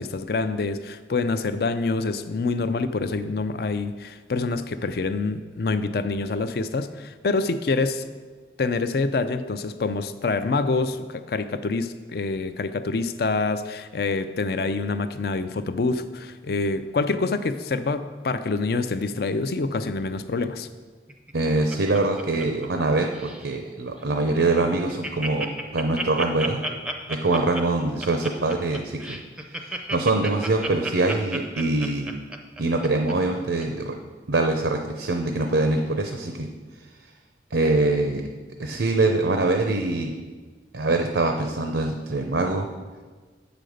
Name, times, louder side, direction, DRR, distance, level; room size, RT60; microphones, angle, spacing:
voice 1, 0.0-8.0 8.6-20.7, left 3 dB, 60° left, 11 dB, 0.4 m, -26 dB
Laughter, 21.1-22.9 23.1-23.5 24.0-24.1 24.3-24.4 24.7-33.1 33.6-33.7, right 2 dB, 5° right, 0.5 m, -32 dB
voice 2, 21.3-25.5 25.7-26.6 27.1-29.2 29.9-32.1 32.6-34.0 34.3-36.5 37.5-38.2 38.6-40.1 40.7-42.7, right 2 dB, 85° right, 4 dB, 0.6 m, -23 dB
7.6 x 5.2 x 6.4 m, 1.4 s
head